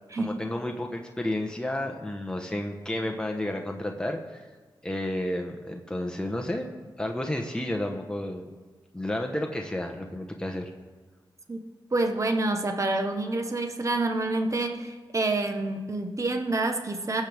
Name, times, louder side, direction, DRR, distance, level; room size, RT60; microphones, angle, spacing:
voice 1, 0.2-4.5 4.8-8.5 8.9-10.7, left 1 dB, 10° left, 2 dB, 1.2 m, -31 dB
voice 2, 11.9-17.2, right 2 dB, 35° right, 5 dB, 1.2 m, -27 dB
22.0 x 7.9 x 3.6 m, 1.3 s
cardioid pair, 60°, 9 cm